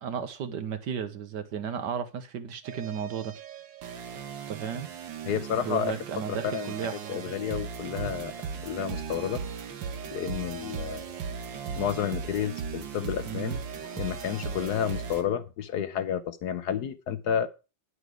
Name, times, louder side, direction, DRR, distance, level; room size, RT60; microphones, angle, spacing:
voice 1, 0.0-3.3 4.5-4.9 5.7-7.4 8.0-8.1 13.2-13.6, right 7 dB, 70° right, 10 dB, 1.6 m, -34 dB
sound 1, 2.6-15.2, right 6 dB, 85° right, 2.0 m, -37 dB
voice 2, 5.2-5.9 6.3-6.7 7.1-8.3 8.6-9.4 10.1-11.1 11.8-17.5, left 8 dB, 65° left, 13 dB, 1.2 m, -31 dB
10.0 x 8.1 x 4.9 m, 0.31 s
omnidirectional pair, 2.0 m